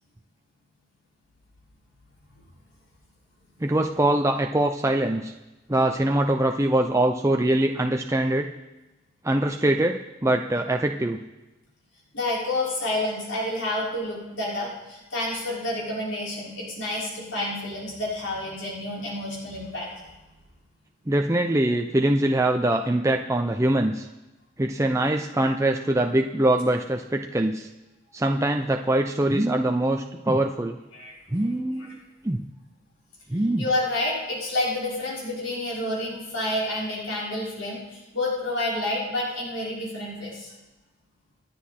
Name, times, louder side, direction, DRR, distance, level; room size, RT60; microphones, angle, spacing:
voice 1, 3.6-5.3 5.7-8.5 9.2-11.2 21.1-24.1 24.6-27.7 28.1-30.8 31.3-32.4 33.3-33.6, right 1 dB, 15° right, 3 dB, 0.6 m, -23 dB
voice 2, 12.1-20.1 30.9-31.1 33.6-40.5, left 1 dB, 90° left, -6 dB, 5.4 m, -29 dB
28.0 x 9.6 x 4.4 m, 1.1 s
head